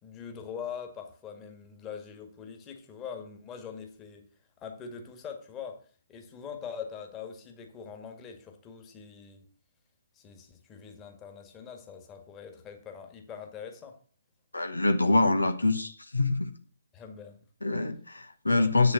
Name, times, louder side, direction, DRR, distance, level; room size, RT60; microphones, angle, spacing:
voice 1, 0.0-4.2 4.6-5.8 6.1-9.5 10.1-14.0 16.9-17.5 18.5-18.7, left 7 dB, 20° left, 5 dB, 1.9 m, -43 dB
voice 2, 14.5-16.5 17.6-18.9, left 2 dB, 85° left, 8 dB, 1.2 m, -25 dB
8.6 x 7.0 x 6.7 m, 0.43 s
figure-of-eight pair, 135°, 0 cm